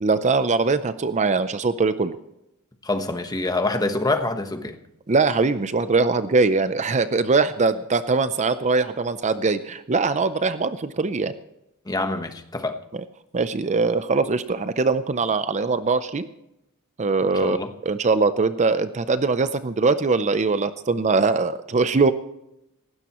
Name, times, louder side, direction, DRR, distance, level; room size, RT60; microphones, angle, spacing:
voice 1, 0.0-2.2 5.1-11.3 13.3-16.3 17.0-17.6 17.9-22.1, right 4 dB, 30° right, 0.5 m, -22 dB
voice 2, 2.8-4.8 11.8-12.8 17.2-17.7, left 2 dB, 15° left, 1.2 m, -26 dB
18.5 x 16.0 x 3.0 m
head